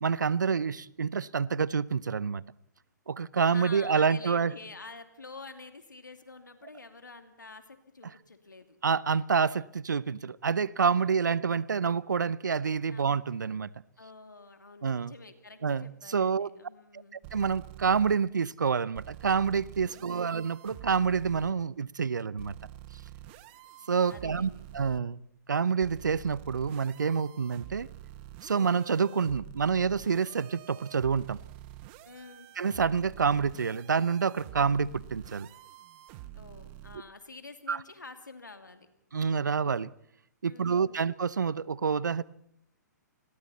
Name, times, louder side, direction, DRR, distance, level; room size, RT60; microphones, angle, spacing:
voice 1, 0.0-2.4 3.1-4.5 8.8-13.7 14.8-15.1 15.6-16.5 17.3-22.5 23.9-25.2 25.5-27.9 28.4-31.4 32.6-35.5 37.7-37.8 39.1-39.9 40.4-42.2, right 6 dB, 80° right, 0.8 m, -28 dB
voice 2, 3.5-8.8 10.9-11.5 12.9-13.1 14.0-17.2 19.9-20.4 24.1-24.7 32.0-32.5 36.3-38.9 40.5-41.0, left 3 dB, 90° left, 2.6 m, -48 dB
sound 1, 17.2-18.1 18.9-21.5 22.4-25.0 25.8-37.0, right 14 dB, 35° right, 1.3 m, -48 dB
29.5 x 21.5 x 4.2 m
figure-of-eight pair, 125°, 10 cm